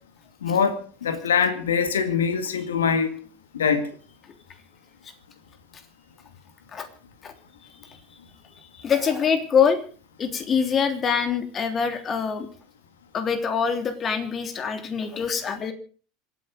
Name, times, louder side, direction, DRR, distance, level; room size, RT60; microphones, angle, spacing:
voice 1, 0.4-3.1 3.5-3.9, left 6 dB, 80° left, 10 dB, 2.0 m, -23 dB
voice 2, 8.7-9.8 10.2-12.5 13.1-15.7, left 6 dB, 35° left, 7 dB, 3.1 m, -24 dB
26.5 x 9.1 x 5.2 m, 0.41 s
hypercardioid pair, 80°, 0 cm